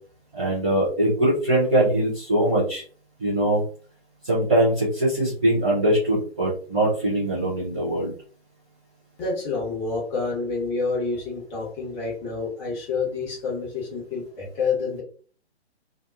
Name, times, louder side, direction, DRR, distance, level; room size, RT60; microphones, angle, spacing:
voice 1, 0.3-2.8 3.2-3.6 4.2-8.1, right 1 dB, 10° right, -13 dB, 0.3 m, -22 dB
voice 2, 9.2-15.0, left 4 dB, 25° left, -4 dB, 1.3 m, -28 dB
2.7 x 2.2 x 2.4 m, 0.41 s
figure-of-eight pair, 130°, 33 cm